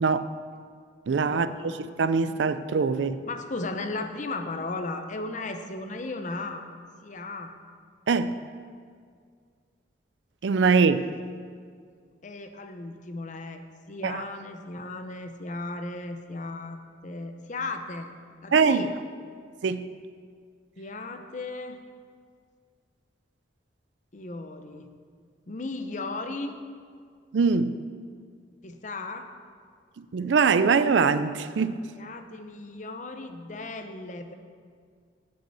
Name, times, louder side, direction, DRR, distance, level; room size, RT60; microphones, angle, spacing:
voice 1, 0.0-0.3 1.1-1.7 2.0-3.2 8.1-8.4 10.4-11.0 14.0-14.2 18.5-18.8 19.6-19.9 27.3-27.8 30.0-31.8, right 5 dB, 80° right, 0.4 m, -23 dB
voice 2, 1.3-1.7 3.3-6.7 7.0-7.5 12.2-18.1 18.4-19.0 20.8-21.8 24.1-24.9 25.5-26.6 28.6-29.3 32.0-34.3, left 2 dB, 40° left, 0.7 m, -36 dB
8.4 x 6.5 x 7.8 m
head